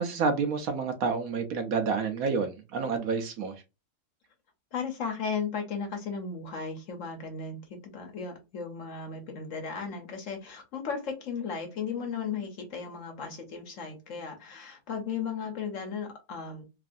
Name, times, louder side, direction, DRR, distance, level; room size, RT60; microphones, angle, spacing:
voice 1, 0.0-3.6, right 5 dB, 70° right, 1.0 m, -29 dB
voice 2, 4.7-16.6, left 5 dB, 60° left, 1.1 m, -35 dB
3.1 x 2.6 x 2.5 m
omnidirectional pair, 1.7 m